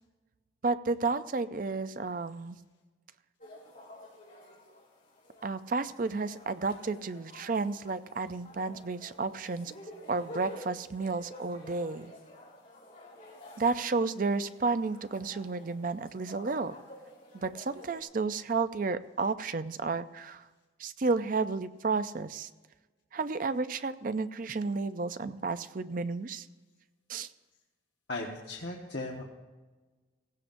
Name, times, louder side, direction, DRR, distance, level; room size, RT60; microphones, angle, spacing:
voice 1, 0.6-2.6 5.4-9.7 10.1-12.1 13.6-16.8 17.3-20.5 20.8-22.5 23.1-26.5 27.1-27.3, right 4 dB, 45° right, 12 dB, 0.5 m, -32 dB
sound 1, 3.4-18.0, left 1 dB, 45° left, 3.6 m, -50 dB
voice 2, 28.1-29.2, left 2 dB, 65° left, -2 dB, 1.3 m, -37 dB
17.5 x 16.0 x 2.6 m, 1.2 s
head